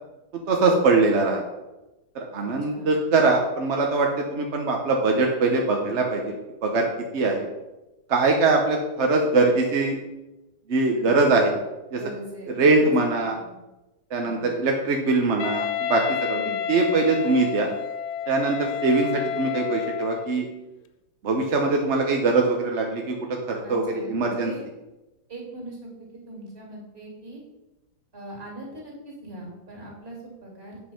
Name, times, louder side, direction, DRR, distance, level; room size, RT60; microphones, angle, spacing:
voice 1, 0.5-1.4 2.1-6.4 6.6-6.9 7.1-7.5 8.1-10.0 10.7-11.5 11.9-12.0 12.6-13.4 14.1-16.4 16.7-17.7 18.3-20.4 21.2-24.5, right 3 dB, 50° right, 2 dB, 0.9 m, -22 dB
voice 2, 2.4-2.9 10.9-11.2 11.9-12.9 13.3-13.5 14.2-14.5 16.3-16.6 23.6-24.6 25.3-25.9 26.3-27.4 28.1-30.8, right 1 dB, 30° right, -2 dB, 3.1 m, -41 dB
Wind instrument woodwind instrument, 15.4-20.4, left 9 dB, 90° left, 1.4 m, -30 dB
8.3 x 5.4 x 5.7 m, 1.0 s
omnidirectional pair, 2.1 m